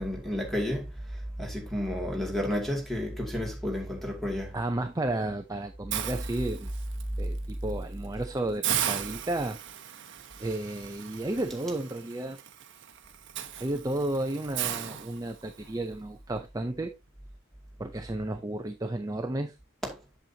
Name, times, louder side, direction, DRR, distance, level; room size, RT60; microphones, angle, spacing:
voice 1, 0.0-4.6 7.2-7.3 19.8-20.0, equal, ahead, 2.2 m, -31 dB
voice 2, 4.5-6.7 7.2-9.6 9.9-10.0 10.4-12.4 13.6-17.0 17.8-19.5, right 1 dB, 15° right, 0.5 m, -32 dB
Hiss, 5.9-7.0 7.5-7.7 8.0-8.1 8.6-15.7, right 10 dB, 60° right, 0.9 m, -36 dB
8.0 x 7.2 x 2.8 m
head